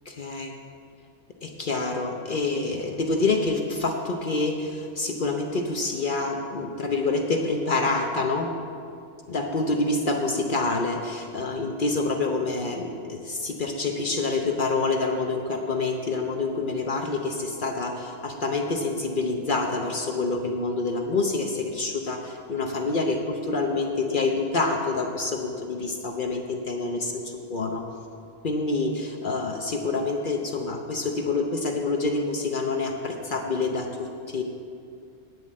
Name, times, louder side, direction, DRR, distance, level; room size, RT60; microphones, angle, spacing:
voice 1, 0.1-0.6 1.4-8.5 9.3-27.8 28.4-34.4, left 3 dB, 50° left, 3 dB, 0.9 m, -27 dB
9.7 x 7.6 x 7.5 m, 2.4 s
omnidirectional pair, 1.2 m